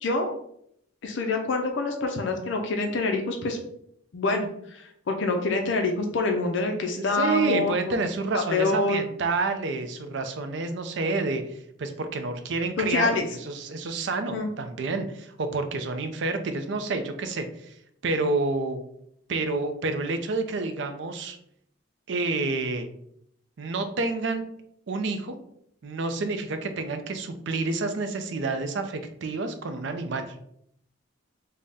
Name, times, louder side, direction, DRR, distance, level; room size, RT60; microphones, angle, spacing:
voice 1, 0.0-0.3 1.0-3.6 4.1-7.7 8.5-9.0 12.9-13.3 14.3-14.5, left 3 dB, 60° left, 4 dB, 0.4 m, -26 dB
voice 2, 7.0-17.7 18.0-18.8 19.3-21.4 22.1-22.9 23.6-24.4 24.9-25.3 25.8-30.3, right 3 dB, 60° right, 8 dB, 0.4 m, -29 dB
3.5 x 2.1 x 3.9 m, 0.72 s
head